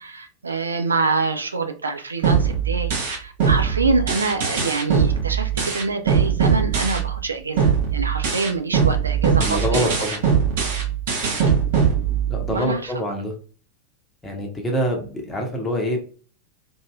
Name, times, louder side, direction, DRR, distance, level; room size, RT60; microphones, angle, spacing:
voice 1, 0.0-10.1 12.5-13.2, right 3 dB, 75° right, 0.4 m, -26 dB
sound 1, 2.2-7.3 7.6-12.6, right 7 dB, 55° right, 0.9 m, -21 dB
voice 2, 9.4-10.3 12.3-13.3 14.2-16.0, equal, 15° left, 0.8 m, -25 dB
2.7 x 2.6 x 2.2 m
figure-of-eight pair, 90°, 0 cm